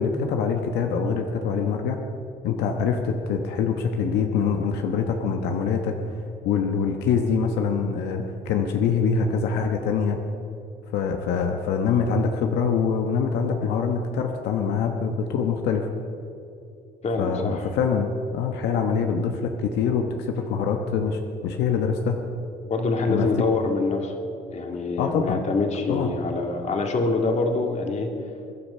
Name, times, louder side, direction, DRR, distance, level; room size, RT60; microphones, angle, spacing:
voice 1, 0.0-2.0 2.4-6.0 6.4-10.2 10.9-15.9 17.2-22.2 23.1-23.3 25.0-25.4 25.9-26.1, left 6 dB, 80° left, 4 dB, 1.2 m, -24 dB
voice 2, 17.0-17.7 22.6-24.2 24.5-28.1, left 3 dB, 40° left, 3 dB, 2.2 m, -25 dB
22.5 x 10.5 x 5.6 m, 2.8 s
cardioid pair, 110°, 17 cm